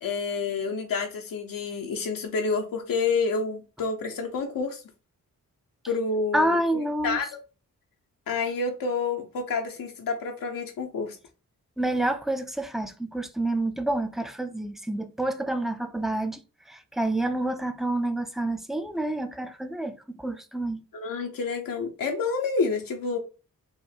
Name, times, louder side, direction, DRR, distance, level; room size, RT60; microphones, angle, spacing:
voice 1, 0.0-4.8 5.9-7.3 8.3-11.2 20.9-23.2, left 4 dB, 75° left, 0.8 m, -29 dB
voice 2, 6.3-7.2 11.8-20.8, right 1 dB, ahead, 0.5 m, -28 dB
4.6 x 2.1 x 3.9 m
cardioid pair, 70°, 34 cm